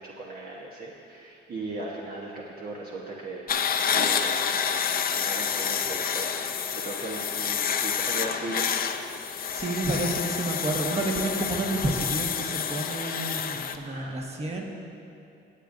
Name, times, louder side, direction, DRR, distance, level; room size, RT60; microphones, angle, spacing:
voice 1, 0.0-3.5 3.8-8.7 13.8-14.3, right 2 dB, 50° right, -4 dB, 1.2 m, -38 dB
sound 1, 3.5-13.8, left 7 dB, 50° left, 0.5 m, -28 dB
voice 2, 9.5-14.6, right 2 dB, 30° right, 0 dB, 1.5 m, -30 dB
19.5 x 8.3 x 2.7 m, 2.6 s
cardioid pair, 90°, 20 cm